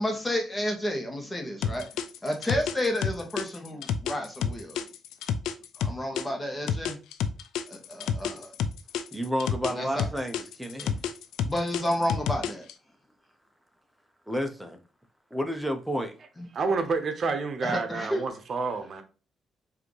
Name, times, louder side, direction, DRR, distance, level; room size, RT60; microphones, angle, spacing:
voice 1, 0.0-1.8 2.2-4.8 5.8-7.0 7.7-8.5 9.7-10.1 11.4-12.7 16.4-16.5 17.6-18.2, left 1 dB, 20° left, 1.3 m, -31 dB
sound 1, 1.6-6.2 6.7-9.7 10.0-12.7, left 7 dB, 85° left, 0.4 m, -29 dB
voice 2, 9.1-11.0 14.3-14.8 15.3-16.1, equal, 5° right, 0.8 m, -31 dB
voice 3, 16.5-19.0, right 4 dB, 50° right, 0.9 m, -29 dB
4.8 x 2.8 x 3.1 m
cardioid pair, 90°, 0 cm